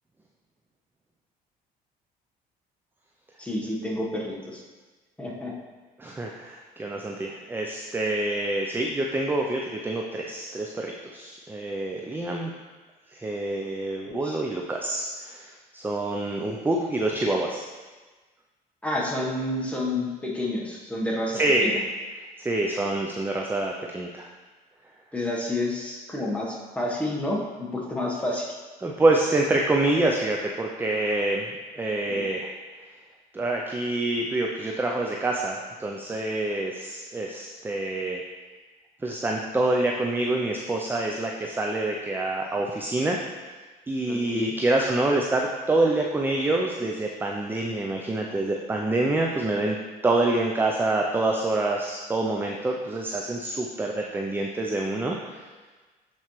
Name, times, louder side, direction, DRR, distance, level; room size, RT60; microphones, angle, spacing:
voice 1, 3.4-4.6 5.2-5.5 14.0-14.4 18.8-21.8 25.1-28.6 32.1-32.2 44.1-44.5, left 1 dB, 5° left, -3 dB, 1.2 m, -29 dB
voice 2, 6.0-12.5 13.1-17.6 21.3-21.8 22.4-24.3 28.8-31.5 31.7-32.5 33.3-38.2 39.0-43.2 43.9-49.8 50.0-55.4, right 2 dB, 10° right, 0 dB, 0.5 m, -26 dB
7.8 x 4.3 x 3.1 m, 1.3 s
cardioid pair, 110°, 17 cm